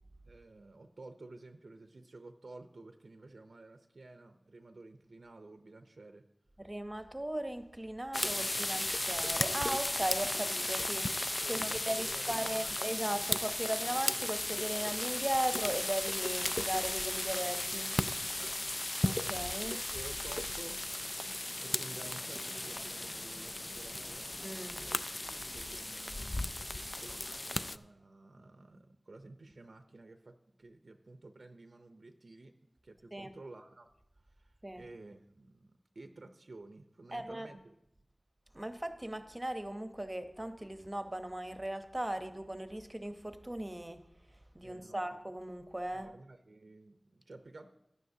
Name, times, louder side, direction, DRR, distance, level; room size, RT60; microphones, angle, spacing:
voice 1, 0.3-6.2 11.4-13.0 14.6-14.8 18.4-18.7 19.9-21.1 21.6-24.3 24.8-26.5 27.0-32.5 32.8-33.9 34.2-37.8 44.6-45.1 45.9-47.7, right 2 dB, 75° right, 0.6 m, -52 dB
voice 2, 6.6-18.0 19.0-19.8 24.4-24.9 33.1-33.3 34.6-34.8 37.1-37.5 38.5-44.1 44.5-46.1, right 1 dB, 20° right, 0.8 m, -38 dB
sound 1, 8.1-27.8, left 1 dB, 30° left, 0.4 m, -35 dB
15.5 x 10.5 x 2.8 m
wide cardioid pair, 75°, 0 cm